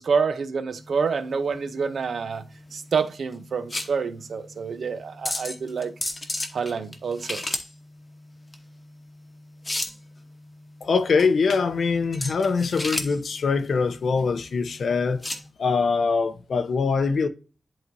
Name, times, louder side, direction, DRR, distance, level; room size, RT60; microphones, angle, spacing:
voice 1, 0.0-2.4 2.7-5.9 6.5-7.5, right 5 dB, 60° right, 0.7 m, -27 dB
sound 1, 0.8-15.5, left 2 dB, 20° left, 1.0 m, -35 dB
voice 2, 10.8-15.2 15.6-17.3, left 4 dB, 60° left, 0.7 m, -23 dB
11.0 x 3.9 x 2.7 m
wide cardioid pair, 155°, 0 cm